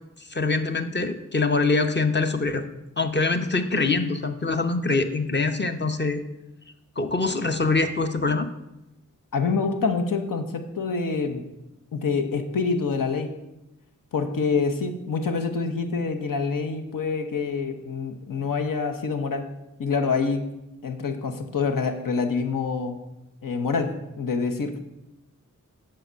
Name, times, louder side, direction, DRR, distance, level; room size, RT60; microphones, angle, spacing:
voice 1, 0.2-2.6 3.0-6.2 7.0-8.5, left 3 dB, 35° left, 7 dB, 0.8 m, -24 dB
voice 2, 9.3-11.5 11.9-13.4 14.1-19.5 19.8-20.5 20.8-23.0 23.4-24.8, left 4 dB, 85° left, 5 dB, 1.0 m, -26 dB
7.8 x 5.8 x 6.2 m, 0.91 s
wide cardioid pair, 75°, 33 cm